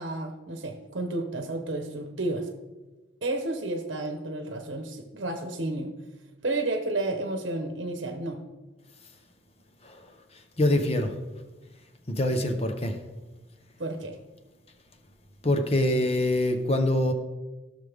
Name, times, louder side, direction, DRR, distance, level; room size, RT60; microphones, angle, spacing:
voice 1, 0.0-2.5 3.2-5.9 6.4-8.4 13.8-14.2, right 2 dB, 60° right, 4 dB, 1.0 m, -31 dB
voice 2, 10.6-11.1 12.1-12.9 15.4-17.1, left 1 dB, 30° left, 6 dB, 0.9 m, -24 dB
16.5 x 6.5 x 3.5 m, 1.2 s
head